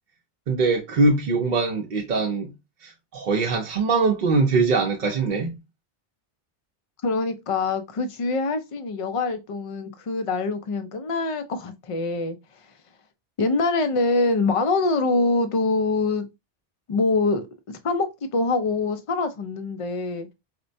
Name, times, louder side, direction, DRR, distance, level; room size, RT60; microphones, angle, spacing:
voice 1, 0.5-2.5 2.8-5.5, right 3 dB, 55° right, 0.7 m, -22 dB
voice 2, 7.0-12.4 13.4-16.3 16.9-17.5 17.8-18.1 18.3-20.3, left 3 dB, 50° left, 0.4 m, -24 dB
4.3 x 2.1 x 2.6 m
omnidirectional pair, 1.0 m